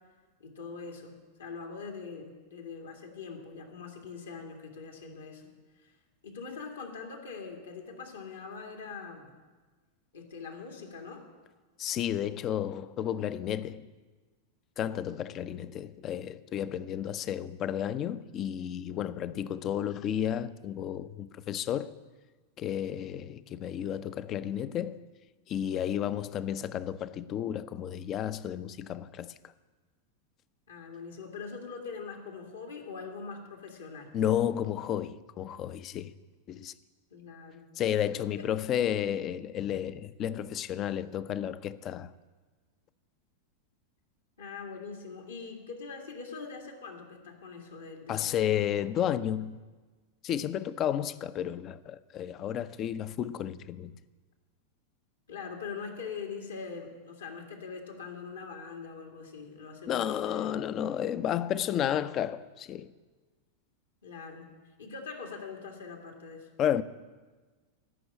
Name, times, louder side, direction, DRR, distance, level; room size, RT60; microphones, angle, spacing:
voice 1, 0.4-5.4 5.8-5.9 6.2-9.3 10.1-11.2 30.7-34.1 37.1-37.7 38.3-38.5 44.4-48.4 55.3-60.5 64.0-64.5 64.8-66.5, left 5 dB, 70° left, 2.1 m, -42 dB
voice 2, 11.8-13.9 14.8-21.9 22.6-25.0 25.5-29.3 34.1-36.1 36.5-36.7 37.8-42.1 48.1-49.6 50.2-54.0 59.9-62.9 66.6-66.8, left 10 dB, 30° left, 0.5 m, -32 dB
14.0 x 6.1 x 9.8 m
figure-of-eight pair, 90°, 0 cm